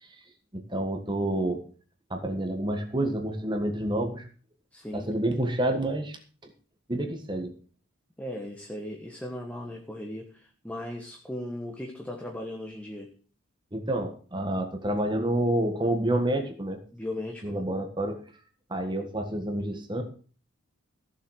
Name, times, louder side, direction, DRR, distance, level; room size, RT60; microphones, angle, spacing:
voice 1, 0.5-1.6 2.1-4.3 4.9-6.2 6.4-6.5 6.9-7.5 13.7-16.8 17.4-18.2 18.7-20.0, right 1 dB, 20° right, 5 dB, 1.5 m, -28 dB
voice 2, 4.7-5.1 8.2-13.1 16.9-17.6, left 1 dB, 5° left, 3 dB, 1.3 m, -37 dB
15.0 x 7.4 x 6.4 m, 0.40 s
head